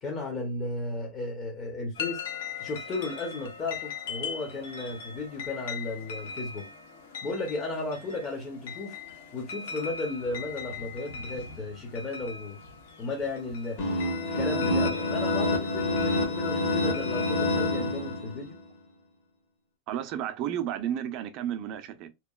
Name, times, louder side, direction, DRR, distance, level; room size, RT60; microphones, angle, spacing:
voice 1, 0.0-2.2 2.6-6.7 7.2-9.0 9.3-12.6 13.0-13.8 14.2-18.6, left 2 dB, 25° left, 0.6 m, -34 dB
sound 1, 1.9-17.7, left 5 dB, 75° left, 0.7 m, -41 dB
sound 2, 13.8-18.5, left 2 dB, 45° left, 1.0 m, -27 dB
voice 2, 19.9-22.1, right 10 dB, 40° right, 0.5 m, -32 dB
2.9 x 2.3 x 2.3 m
supercardioid pair, 160°, 0 cm